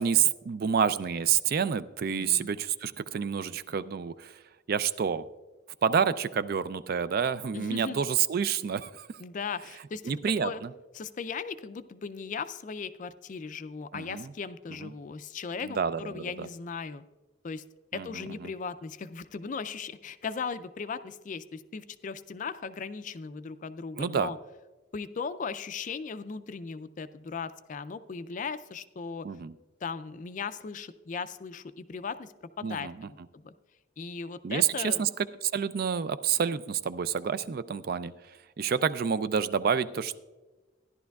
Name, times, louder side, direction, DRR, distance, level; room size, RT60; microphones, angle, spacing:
voice 1, 0.0-4.4 4.7-5.3 5.8-9.1 10.0-10.7 13.9-14.3 14.8-14.9 15.6-16.5 17.9-18.5 24.0-24.3 29.2-29.5 32.6-33.1 34.4-40.2, right 7 dB, 50° right, 15 dB, 0.3 m, -29 dB
voice 2, 2.1-2.5 7.5-8.0 9.2-10.0 10.4-10.6 10.9-17.0 17.4-17.6 17.9-24.4 24.9-29.3 29.8-33.5 34.0-35.0, left 5 dB, 40° left, 13 dB, 0.4 m, -37 dB
13.5 x 11.0 x 2.3 m, 1.2 s
head